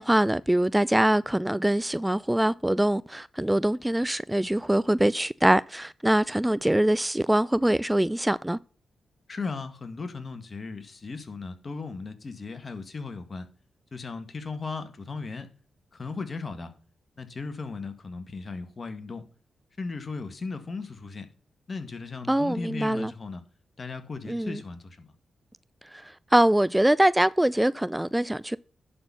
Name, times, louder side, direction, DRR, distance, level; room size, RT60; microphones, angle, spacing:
voice 1, 0.0-8.6 22.3-23.1 24.3-24.6 25.8-28.6, right 1 dB, 10° right, 0.3 m, -23 dB
voice 2, 9.3-13.5 13.9-15.5 15.9-16.7 17.2-19.3 19.8-21.3 21.7-23.4 23.8-25.1, left 4 dB, 45° left, 1.8 m, -36 dB
11.0 x 4.3 x 5.7 m
supercardioid pair, 45°, 0 cm